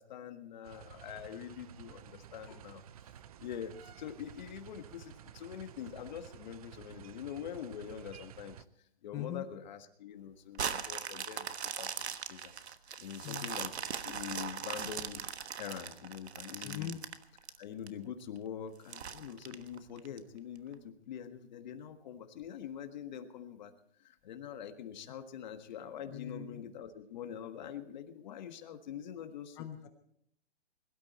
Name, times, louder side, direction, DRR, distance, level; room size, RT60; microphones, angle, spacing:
voice 1, 0.0-2.8 3.4-8.6 9.0-12.5 13.0-13.7 14.0-15.2 15.6-16.9 17.6-23.7 24.0-29.6, left 9 dB, 45° left, 8 dB, 1.6 m, -44 dB
sound 1, 0.6-8.6, right 9 dB, 35° right, 0.6 m, -52 dB
voice 2, 9.1-9.4 13.2-13.5 16.6-17.0 26.1-26.6 29.6-29.9, left 10 dB, 10° left, 7 dB, 0.5 m, -41 dB
sound 2, 10.5-17.9 18.4-18.5 18.9-20.2 20.7-20.8, right 7 dB, 90° right, 1.4 m, -39 dB
22.0 x 12.5 x 4.3 m, 0.68 s
hypercardioid pair, 160°, 32 cm